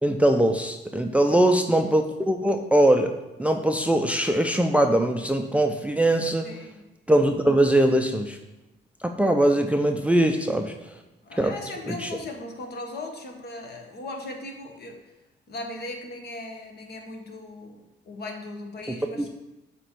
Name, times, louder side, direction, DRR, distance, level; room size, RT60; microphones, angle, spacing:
voice 1, 0.0-3.1 3.4-6.5 7.1-8.4 9.0-10.7 11.4-11.5 11.9-12.1 19.2-19.3, right 1 dB, 5° right, 4 dB, 0.5 m, -21 dB
voice 2, 6.4-6.8 11.2-15.1 15.5-19.3, left 2 dB, 55° left, 3 dB, 1.3 m, -38 dB
7.6 x 3.1 x 6.0 m, 0.98 s
cardioid pair, 90°, 20 cm